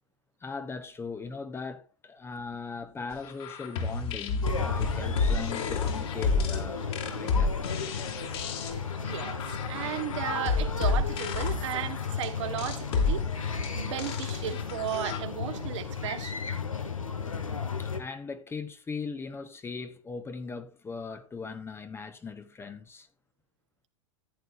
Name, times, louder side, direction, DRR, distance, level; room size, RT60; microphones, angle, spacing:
voice 1, 0.4-7.6 17.8-23.1, left 4 dB, 15° left, 0.9 m, -39 dB
sound 1, 3.2-15.2, left 4 dB, 55° left, 2.9 m, -30 dB
sound 2, 4.4-18.0, left 5 dB, 90° left, 1.5 m, -34 dB
voice 2, 9.0-13.3 13.7-16.4, right 11 dB, 65° right, 1.3 m, -35 dB
14.5 x 9.3 x 2.6 m
hypercardioid pair, 105°, 17 cm